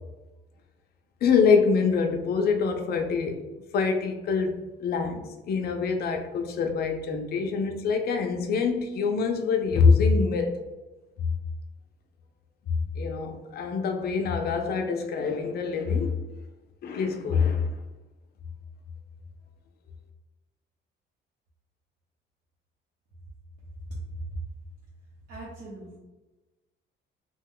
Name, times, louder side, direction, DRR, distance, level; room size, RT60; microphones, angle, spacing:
voice 1, 1.2-3.4 3.7-10.5 13.0-16.2 16.8-17.7, left 5 dB, 55° left, 5 dB, 0.5 m, -25 dB
voice 2, 25.3-26.0, right 1 dB, 55° right, -7 dB, 0.8 m, -38 dB
2.9 x 2.1 x 3.6 m, 1.1 s
cardioid pair, 165°, 20 cm